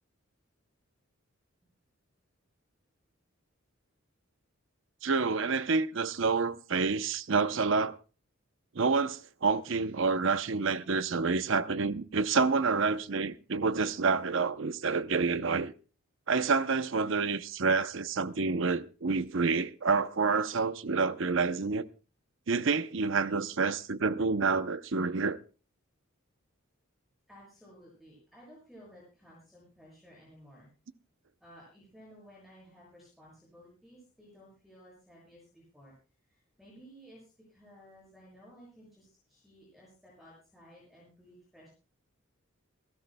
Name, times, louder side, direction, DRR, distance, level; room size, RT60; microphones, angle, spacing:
voice 1, 5.0-8.0 8.7-15.7 16.3-21.9 22.5-25.4, right 4 dB, 60° right, 0.7 m, -28 dB
voice 2, 27.3-30.7 31.4-35.9 36.3-41.7, equal, ahead, 7.0 m, -56 dB
28.0 x 12.5 x 2.2 m
head